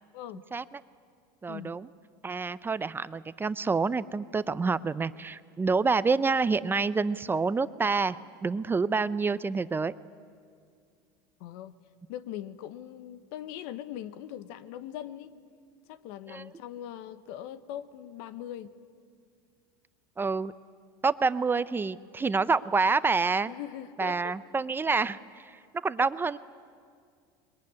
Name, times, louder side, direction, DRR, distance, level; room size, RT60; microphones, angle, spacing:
voice 1, 1.4-1.9 2.2-8.2 8.4-9.9 16.3-16.5 20.2-20.5 21.0-23.5 24.0-25.2 25.8-26.4, right 4 dB, 15° right, 15 dB, 0.5 m, -27 dB
voice 2, 11.4-11.8 12.1-15.3 15.9-18.7 23.4-24.4 26.0-26.1, left 11 dB, 70° left, 14 dB, 1.1 m, -41 dB
22.0 x 21.5 x 9.6 m, 2.2 s
supercardioid pair, 110°, 13 cm